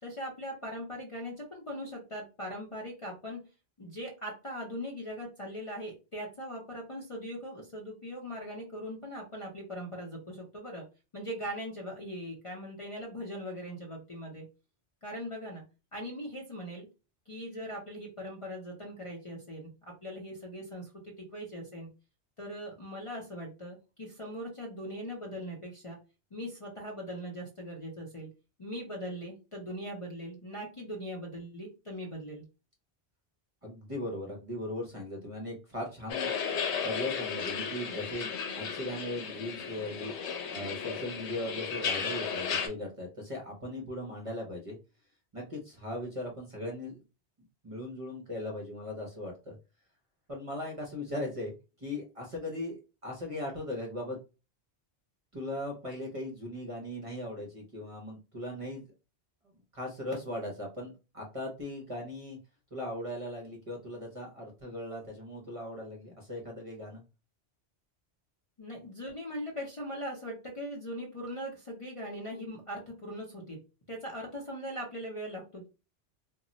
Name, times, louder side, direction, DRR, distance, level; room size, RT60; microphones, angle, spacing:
voice 1, 0.0-3.4 3.8-10.8 11.1-14.4 15.0-15.6 15.9-16.9 17.3-19.7 20.0-21.9 22.4-26.0 26.3-28.3 28.6-32.4 68.6-73.6 73.9-75.7, equal, 35° left, -1 dB, 0.6 m, -40 dB
voice 2, 33.6-36.3 36.8-44.8 45.3-47.0 47.6-49.5 50.3-54.2 55.3-58.8 59.7-62.4 62.7-67.0, left 1 dB, 40° right, 0 dB, 0.6 m, -38 dB
sound 1, 36.1-42.7, left 6 dB, 85° left, 0.9 m, -34 dB
2.2 x 2.0 x 3.8 m, 0.30 s
omnidirectional pair, 1.1 m